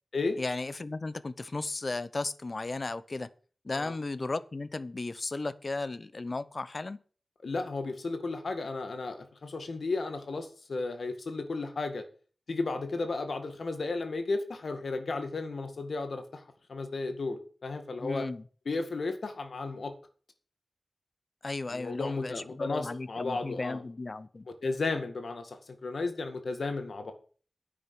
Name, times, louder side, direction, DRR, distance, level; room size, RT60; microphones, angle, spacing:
voice 1, 0.4-3.3 3.6-7.0 18.0-18.4 21.4-24.5, left 3 dB, 45° left, 16 dB, 0.7 m, -35 dB
voice 2, 7.4-12.0 12.5-18.3 18.7-19.9 21.7-23.8 24.6-27.1, left 3 dB, 75° left, 7 dB, 1.9 m, -34 dB
10.5 x 8.6 x 7.0 m, 0.41 s
wide cardioid pair, 105°, 0 cm